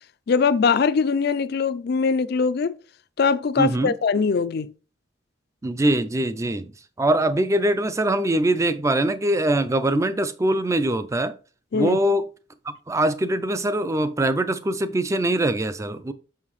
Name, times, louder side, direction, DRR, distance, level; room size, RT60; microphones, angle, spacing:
voice 1, 0.3-2.8 3.2-4.7 11.7-12.0, left 5 dB, 55° left, 0.4 m, -21 dB
voice 2, 3.6-3.9 5.6-6.7 7.0-11.3 11.7-12.3 12.7-16.1, right 1 dB, 15° right, 0.4 m, -22 dB
5.9 x 5.7 x 3.1 m
head